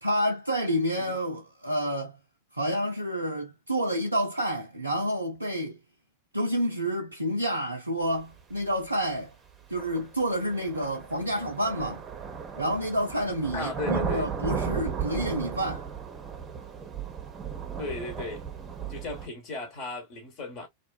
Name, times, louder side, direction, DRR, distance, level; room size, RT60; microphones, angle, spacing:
voice 1, 0.0-2.2 2.5-5.8 6.3-9.3 9.7-12.0 12.6-15.8, equal, 85° right, 0.4 m, -29 dB
sound 1, 8.7-8.8 9.8-19.3, right 6 dB, 20° right, 0.7 m, -35 dB
voice 2, 13.5-14.3 17.8-18.4 18.9-20.7, left 2 dB, 40° left, 1.0 m, -36 dB
2.4 x 2.2 x 2.3 m
figure-of-eight pair, 90°, 0 cm